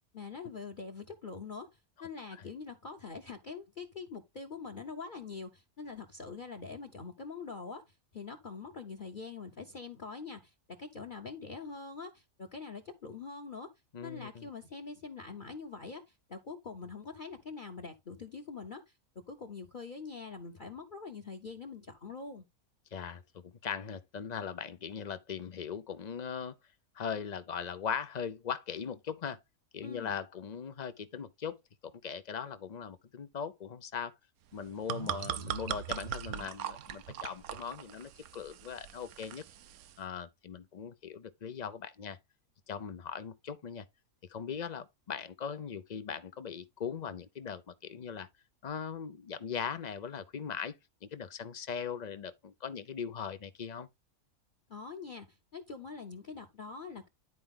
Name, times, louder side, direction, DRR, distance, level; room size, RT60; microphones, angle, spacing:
voice 1, 0.1-1.7 2.0-10.5 10.8-13.7 14.0-18.9 19.3-22.4 29.8-30.2 54.7-57.1, left 4 dB, 40° left, 0.9 m, -44 dB
voice 2, 13.9-14.5 22.9-26.6 26.9-29.4 29.7-31.6 31.8-34.1 34.5-39.4 40.0-42.2 42.7-43.9 44.3-48.3 48.6-50.8 51.0-53.9, left 7 dB, 60° left, 0.4 m, -39 dB
sound 1, 34.5-40.0, right 10 dB, 75° right, 1.1 m, -40 dB
11.0 x 4.6 x 3.7 m
omnidirectional pair, 1.6 m